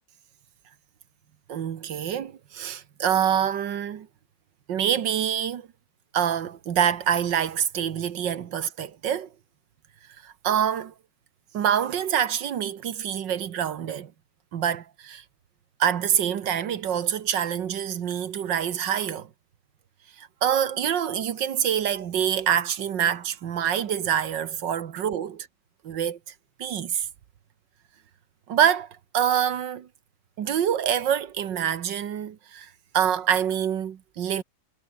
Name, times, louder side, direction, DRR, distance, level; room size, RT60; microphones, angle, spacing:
voice 1, 1.5-4.1 4.7-5.7 6.1-9.3 10.2-10.9 11.5-14.1 14.5-15.2 15.8-19.3 20.2-25.5 25.8-26.2 26.6-27.1 28.5-28.9 29.1-29.9 30.4-32.7 32.9-34.4, right 9 dB, 70° right, 1.9 m, -26 dB
omnidirectional pair, 2.1 m